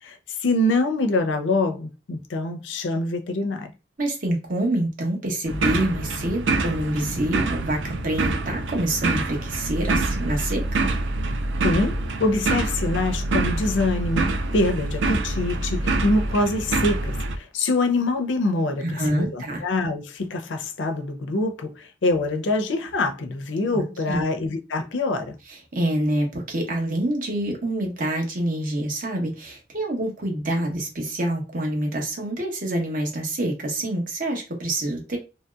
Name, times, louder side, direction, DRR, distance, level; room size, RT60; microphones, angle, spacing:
voice 1, 0.0-3.7 11.6-25.4, left 2 dB, 90° left, 0.5 m, -25 dB
voice 2, 4.0-10.7 18.8-19.6 23.7-24.2 25.5-35.2, right 1 dB, 50° right, 0.9 m, -26 dB
sound 1, 5.5-17.4, right 2 dB, 85° right, 0.4 m, -26 dB
2.9 x 2.7 x 2.3 m
head